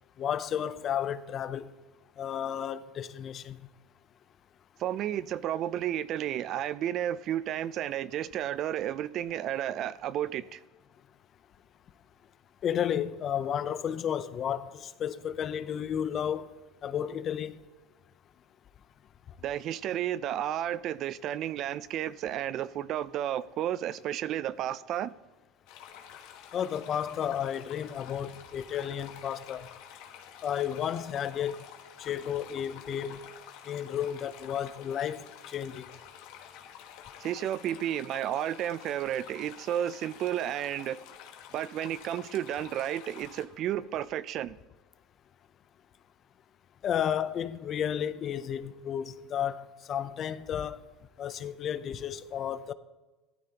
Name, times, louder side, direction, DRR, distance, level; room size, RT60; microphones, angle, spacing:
voice 1, 0.2-1.7 2.2-3.7 12.6-16.5 16.8-17.6 26.5-29.7 30.4-31.6 32.0-33.3 33.7-35.8 46.8-50.8 51.2-52.7, left 9 dB, 40° left, 0.6 m, -32 dB
voice 2, 4.8-10.6 19.4-25.1 37.2-41.0 41.5-44.6, right 11 dB, 50° right, 0.4 m, -32 dB
sound 1, 25.7-43.4, left 9 dB, 70° left, 1.5 m, -49 dB
15.5 x 12.0 x 2.9 m
supercardioid pair, 120°, 0 cm